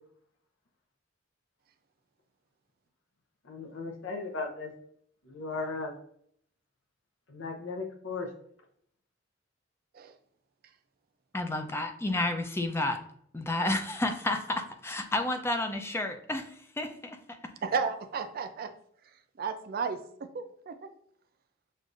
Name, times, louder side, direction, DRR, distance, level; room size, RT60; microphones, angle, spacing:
voice 1, 3.4-4.7 5.2-5.9 7.3-8.3, left 3 dB, 75° left, 2 dB, 0.7 m, -36 dB
voice 2, 11.3-13.0 13.3-17.5, left 2 dB, 15° left, 6 dB, 0.4 m, -31 dB
voice 3, 17.6-18.7 19.4-20.9, right 5 dB, 50° right, 8 dB, 0.4 m, -33 dB
6.3 x 2.5 x 2.5 m, 0.67 s
head